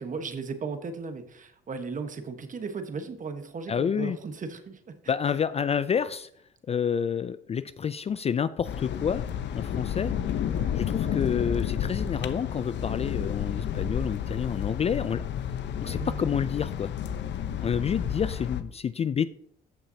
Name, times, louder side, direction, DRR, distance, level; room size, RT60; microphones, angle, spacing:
voice 1, 0.0-4.8 10.5-10.7 15.8-16.4, right 4 dB, 40° right, 8 dB, 1.3 m, -36 dB
voice 2, 3.7-4.2 5.1-6.3 6.7-9.2 9.5-10.1 10.7-15.2 15.8-16.9 17.6-19.3, left 7 dB, 30° left, 15 dB, 0.4 m, -28 dB
sound 1, 8.6-18.6, left 9 dB, 60° left, 0.8 m, -31 dB
14.5 x 5.7 x 2.8 m, 0.66 s
supercardioid pair, 75°, 21 cm